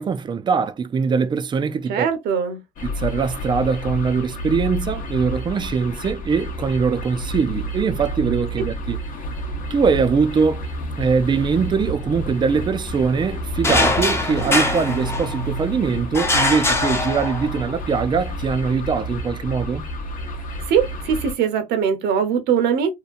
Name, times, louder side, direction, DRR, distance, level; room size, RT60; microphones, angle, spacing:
voice 1, 0.0-2.1 2.8-9.0 9.7-10.6 11.0-19.8, right 5 dB, 25° right, 0.4 m, -22 dB
voice 2, 1.9-2.6 20.7-22.9, right 7 dB, 80° right, 0.9 m, -21 dB
Moorgate - Shop alarm going off, 2.8-21.3, equal, 55° left, 0.8 m, -30 dB
sound 1, 13.6-15.6 16.1-17.7, left 2 dB, 15° left, 0.7 m, -22 dB
2.8 x 2.2 x 2.4 m
cardioid pair, 110°, 17 cm